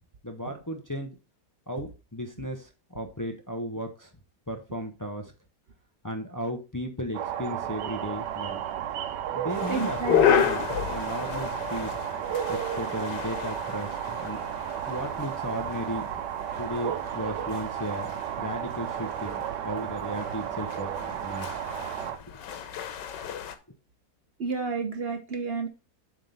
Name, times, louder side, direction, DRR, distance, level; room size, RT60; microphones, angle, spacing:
voice 1, 0.2-1.1 1.7-4.1 4.5-5.3 6.0-8.6 9.3-12.0 12.5-14.5 14.9-16.1 16.6-21.6, equal, 30° left, 4 dB, 0.3 m, -35 dB
sound 1, 7.1-22.2, right 10 dB, 85° right, 1.3 m, -33 dB
sound 2, 9.5-23.6, left 9 dB, 90° left, 1.5 m, -32 dB
voice 2, 9.7-10.4 24.4-25.7, right 4 dB, 45° right, 5 dB, 0.9 m, -31 dB
7.5 x 3.7 x 5.3 m, 0.31 s
omnidirectional pair, 1.8 m